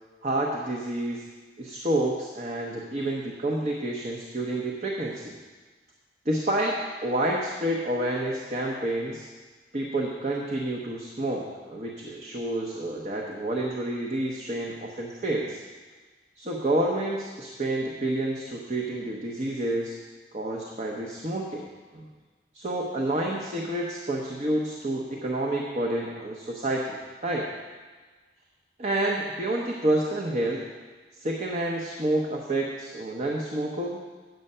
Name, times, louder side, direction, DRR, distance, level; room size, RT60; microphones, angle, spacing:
voice 1, 0.2-1.3 1.6-5.4 6.2-9.3 9.7-15.6 16.4-20.0 20.3-21.7 21.9-22.1 22.5-27.5 28.8-30.6 31.1-34.0, right 1 dB, 40° right, -1 dB, 0.8 m, -29 dB
8.8 x 7.8 x 5.5 m, 1.4 s
head